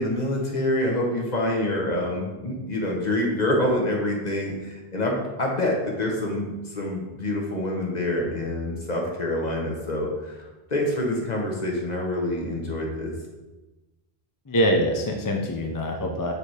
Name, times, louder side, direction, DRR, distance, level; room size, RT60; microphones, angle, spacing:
voice 1, 0.0-13.1, left 1 dB, 40° left, 0 dB, 1.2 m, -26 dB
voice 2, 14.5-16.3, equal, 25° left, 2 dB, 0.4 m, -24 dB
6.7 x 3.4 x 4.8 m, 1.1 s
omnidirectional pair, 1.1 m